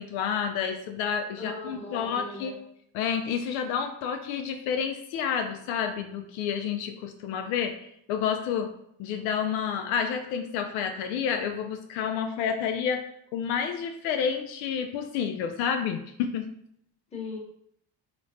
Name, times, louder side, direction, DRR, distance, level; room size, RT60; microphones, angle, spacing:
voice 1, 0.0-2.5 2.9-8.7 9.0-13.1 13.3-16.5, left 7 dB, 75° left, 6 dB, 0.5 m, -29 dB
voice 2, 1.4-2.6 17.1-17.4, left 3 dB, 15° left, -3 dB, 1.0 m, -38 dB
3.2 x 3.0 x 2.7 m, 0.71 s
cardioid pair, 110°, 47 cm